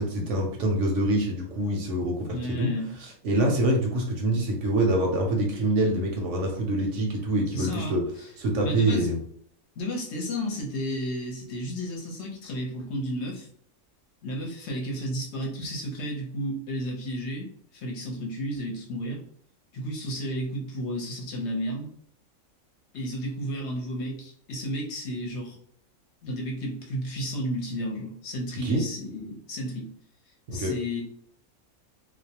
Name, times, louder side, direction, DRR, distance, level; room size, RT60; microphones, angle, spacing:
voice 1, 0.0-2.7 3.2-8.0 8.4-9.2 28.6-28.8 30.5-30.7, right 1 dB, 65° right, 1 dB, 0.8 m, -25 dB
voice 2, 2.3-2.9 7.5-8.3 8.6-9.1 9.8-13.5 14.2-19.2 19.7-21.9 22.9-25.6 26.2-29.9 30.5-31.0, equal, 55° left, -1 dB, 0.9 m, -32 dB
2.4 x 2.1 x 2.8 m, 0.63 s
omnidirectional pair, 1.5 m